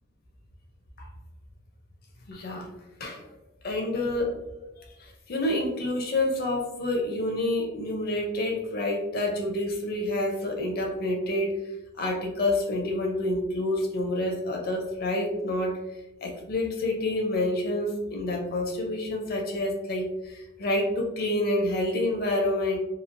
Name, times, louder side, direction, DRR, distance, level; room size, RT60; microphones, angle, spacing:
voice 1, 2.3-2.7 3.0-3.3 3.6-4.4 4.8-11.6 12.0-15.8 16.2-22.8, left 1 dB, 45° left, 1 dB, 0.5 m, -28 dB
3.0 x 2.3 x 2.5 m, 0.95 s
head